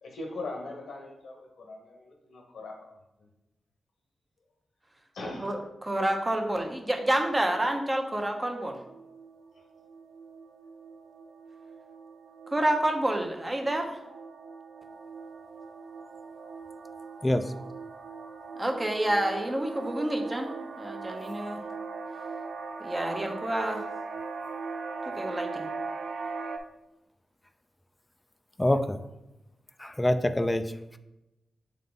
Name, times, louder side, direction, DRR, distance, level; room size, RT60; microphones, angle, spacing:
voice 1, 0.0-3.3 5.1-5.5 9.5-9.6, left 2 dB, 85° left, 1 dB, 1.1 m, -40 dB
voice 2, 5.4-8.8 12.5-14.0 18.6-20.5 20.8-21.6 22.8-23.8 25.0-25.7, right 1 dB, 25° right, 3 dB, 1.1 m, -28 dB
sound 1, 8.9-26.6, right 4 dB, 75° right, 0.5 m, -40 dB
voice 3, 28.6-29.0 29.8-30.7, left 1 dB, 15° left, 9 dB, 0.5 m, -25 dB
6.7 x 3.7 x 3.8 m, 0.92 s
cardioid pair, 60°, 0 cm